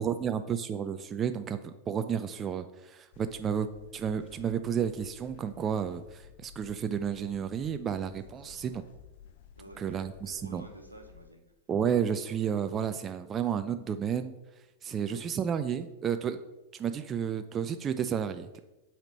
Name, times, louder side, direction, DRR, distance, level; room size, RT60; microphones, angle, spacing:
voice 1, 0.0-8.8 9.8-10.6 11.7-14.3 14.8-16.4 16.7-18.6, right 8 dB, 25° right, 9 dB, 0.5 m, -32 dB
sound 1, 3.1-11.3, left 8 dB, 55° left, 0.6 m, -54 dB
voice 2, 8.2-8.8 9.6-11.4 14.9-15.2, right 1 dB, 85° right, 3 dB, 1.3 m, -51 dB
7.9 x 4.3 x 6.7 m, 1.0 s
figure-of-eight pair, 90°, 0 cm